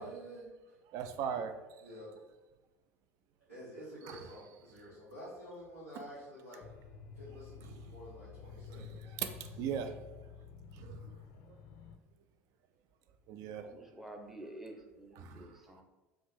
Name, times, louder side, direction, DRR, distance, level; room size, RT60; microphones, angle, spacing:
voice 1, 0.0-0.7 1.8-2.1 3.5-6.6 7.1-9.0, equal, 85° right, -11 dB, 1.3 m, -49 dB
voice 2, 0.9-1.5 4.1-4.2 8.7-8.9 9.2-9.9 10.7-11.1 13.3-13.7 15.2-15.5, right 8 dB, 50° right, 8 dB, 0.4 m, -38 dB
sound 1, 6.6-12.0, left 6 dB, 50° left, 0.4 m, -50 dB
voice 3, 13.6-15.8, right 1 dB, 5° right, 2 dB, 0.7 m, -49 dB
5.0 x 2.4 x 3.4 m, 1.1 s
figure-of-eight pair, 70°, 8 cm